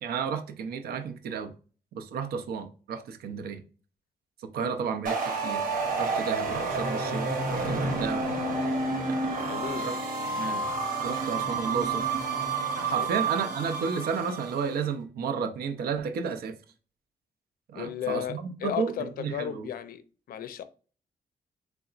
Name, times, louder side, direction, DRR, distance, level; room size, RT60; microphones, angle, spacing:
voice 1, 0.0-1.5 1.9-3.6 4.5-5.6 6.0-8.2 9.0-10.0 10.4-10.6 11.0-12.1 12.8-16.6 17.7-19.7, right 6 dB, 80° right, 0.6 m, -32 dB
sound 1, 5.0-14.7, right 3 dB, 60° right, 1.1 m, -29 dB
voice 2, 9.5-9.9 13.0-13.1 17.8-20.0 20.3-20.6, left 10 dB, 70° left, 0.5 m, -34 dB
3.9 x 3.4 x 2.4 m
cardioid pair, 130°, 16 cm